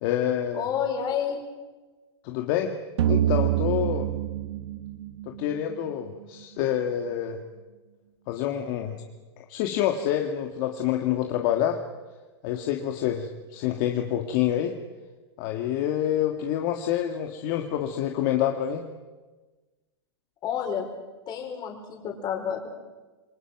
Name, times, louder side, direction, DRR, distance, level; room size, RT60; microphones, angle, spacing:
voice 1, 0.0-0.6 2.2-2.7 3.1-4.1 5.4-7.4 8.3-9.0 9.4-11.8 12.4-14.8 15.4-18.8, left 10 dB, 50° left, 3 dB, 2.1 m, -27 dB
voice 2, 0.5-1.4 20.4-20.9 21.3-22.7, left 8 dB, 30° left, 2 dB, 5.1 m, -29 dB
sound 1, 3.0-5.9, right 12 dB, 70° right, 1.2 m, -26 dB
28.0 x 22.0 x 6.1 m, 1.3 s
supercardioid pair, 145°, 14 cm